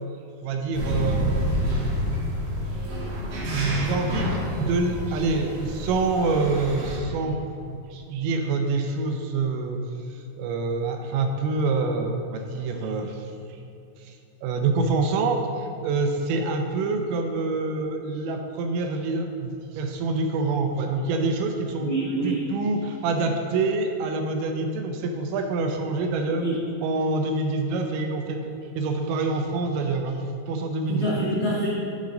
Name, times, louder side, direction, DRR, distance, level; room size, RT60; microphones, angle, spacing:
voice 1, 0.4-1.7 3.5-7.4 7.9-9.8 10.1-13.3 14.0-14.2 14.4-21.9 22.2-26.5 26.8-31.1, right 3 dB, 80° right, 4 dB, 2.8 m, -26 dB
sound 1, 0.7-7.0, equal, 65° right, 2.5 m, -28 dB
voice 2, 21.8-22.4 26.4-26.6 30.9-31.7, right 1 dB, 70° left, -10 dB, 1.7 m, -26 dB
10.5 x 5.2 x 3.8 m, 2.6 s
omnidirectional pair, 5.5 m